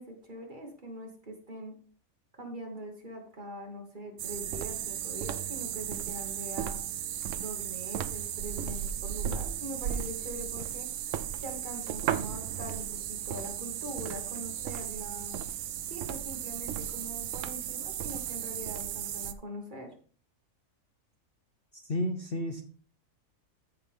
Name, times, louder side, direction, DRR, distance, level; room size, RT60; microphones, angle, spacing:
voice 1, 0.0-1.7 2.3-6.8 7.4-10.9 11.4-15.4 15.9-19.9, equal, 35° right, 1 dB, 2.1 m, -42 dB
sound 1, 4.2-19.3, right 10 dB, 70° right, 0.9 m, -35 dB
voice 2, 21.7-22.6, left 1 dB, 50° left, 5 dB, 0.9 m, -32 dB
14.5 x 4.8 x 3.6 m, 0.43 s
omnidirectional pair, 1.5 m